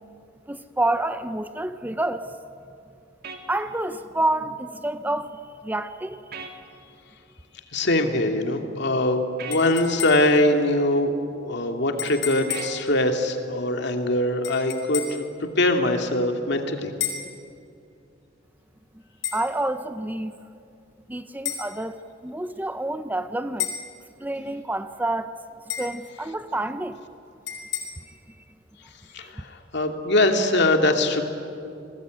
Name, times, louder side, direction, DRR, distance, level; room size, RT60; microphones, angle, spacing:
voice 1, 0.5-2.3 3.5-6.2 19.3-20.4 21.1-23.7 24.2-25.3 25.8-27.0 28.1-28.2 29.2-29.3, right 1 dB, 10° right, 10 dB, 0.6 m, -28 dB
sound 1, 3.2-3.4 6.3-6.5 9.4-9.6 12.5-12.7, right 5 dB, 55° right, 2.6 m, -37 dB
voice 2, 7.7-15.0 15.6-16.9 29.1-31.2, left 1 dB, 65° left, 4 dB, 2.4 m, -22 dB
sound 2, 9.5-10.4 12.0-12.8 14.4-15.3 17.0-17.3 19.2-19.4 21.4-21.7 23.6-23.9 25.7-26.0 27.5-27.8, left 9 dB, 80° left, 5.1 m, -31 dB
27.0 x 20.5 x 9.2 m, 2.6 s
head